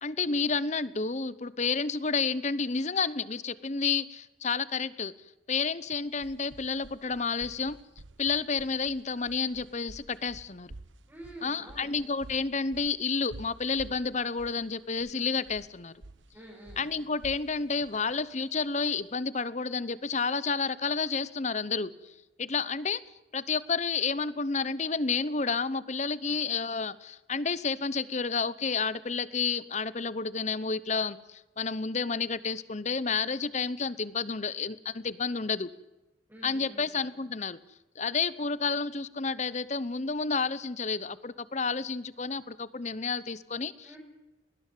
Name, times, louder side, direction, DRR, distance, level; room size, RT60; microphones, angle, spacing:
voice 1, 0.0-5.1 5.5-7.8 8.2-10.7 11.4-15.9 16.8-22.1 22.4-23.0 23.3-35.7 36.4-37.6 38.0-43.9, left 4 dB, 35° left, 17 dB, 0.9 m, -30 dB
sound 1, 5.9-19.1, right 2 dB, 80° right, 1.2 m, -51 dB
voice 2, 11.1-12.0 16.3-16.9 26.3-26.4 36.3-37.0 43.8-44.0, right 1 dB, 10° right, -5 dB, 5.7 m, -48 dB
20.5 x 19.5 x 7.6 m, 1.0 s
head